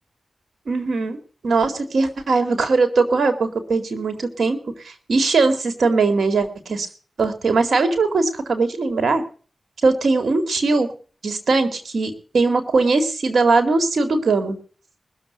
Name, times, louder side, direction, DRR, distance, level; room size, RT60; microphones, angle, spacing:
voice 1, 0.7-1.2 1.4-4.6 4.8-6.9 7.2-9.2 9.8-10.9 11.2-14.6, right 3 dB, 80° right, 8 dB, 2.3 m, -20 dB
20.0 x 7.2 x 7.9 m, 0.41 s
cardioid pair, 45°, 0 cm